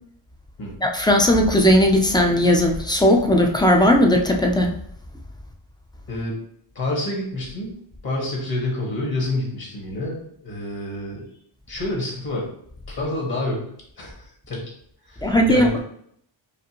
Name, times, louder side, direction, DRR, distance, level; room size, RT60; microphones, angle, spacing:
voice 1, 0.8-4.7 15.2-15.7, left 1 dB, 10° left, 3 dB, 0.4 m, -17 dB
voice 2, 6.7-7.7 8.0-11.2 11.7-12.5 12.9-13.7 14.0-14.7 15.1-15.8, left 1 dB, 45° left, -2 dB, 1.6 m, -28 dB
5.0 x 2.6 x 2.9 m, 0.66 s
cardioid pair, 120°, 50 cm